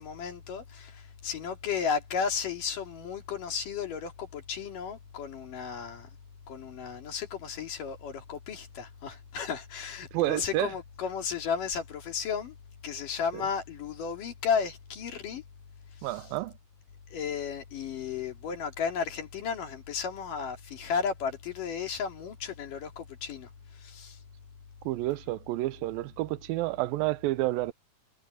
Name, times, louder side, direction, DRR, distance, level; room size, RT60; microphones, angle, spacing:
voice 1, 0.0-6.1 6.5-12.5 12.8-15.4 17.1-23.5 23.8-24.2, left 6 dB, 65° left, 4.3 m, -34 dB
voice 2, 10.1-10.7 13.3-13.4 16.0-16.5 24.9-27.7, right 18 dB, 85° right, 2.4 m, -30 dB
omnidirectional pair, 4.1 m